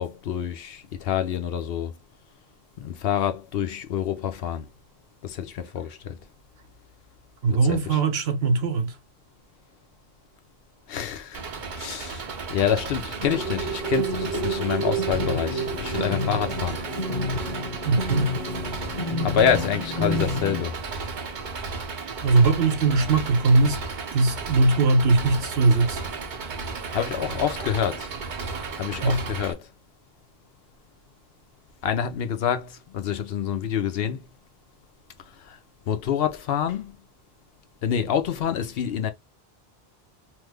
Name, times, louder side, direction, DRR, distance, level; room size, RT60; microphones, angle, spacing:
voice 1, 0.0-1.9 2.8-4.7 5.2-6.2 7.5-8.0 10.9-11.4 11.8-16.8 19.2-20.8 22.2-22.4 26.9-28.1 28.8-29.7 31.8-34.2 35.4-35.6 35.9-37.0 37.8-39.1, left 8 dB, 75° left, 0.8 m, -27 dB
voice 2, 7.4-9.0 17.8-18.3 22.2-23.8 24.1-26.0 29.0-29.2, right 3 dB, 80° right, 1.1 m, -20 dB
Engine, 11.3-29.5, right 4 dB, 55° right, 0.8 m, -34 dB
sound 1, 13.2-20.6, equal, 35° left, 1.1 m, -29 dB
3.1 x 2.0 x 3.3 m
omnidirectional pair, 1.0 m